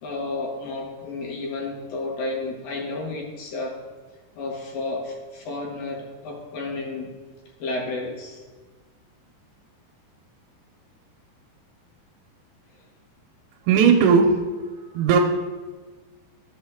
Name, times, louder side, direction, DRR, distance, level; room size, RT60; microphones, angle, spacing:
voice 1, 0.0-3.8 4.4-7.1 7.6-8.4, left 2 dB, 65° left, -1 dB, 2.8 m, -31 dB
voice 2, 13.7-14.6 14.9-15.2, right 6 dB, 85° right, 0 dB, 2.7 m, -17 dB
11.5 x 7.0 x 3.5 m, 1.3 s
omnidirectional pair, 4.8 m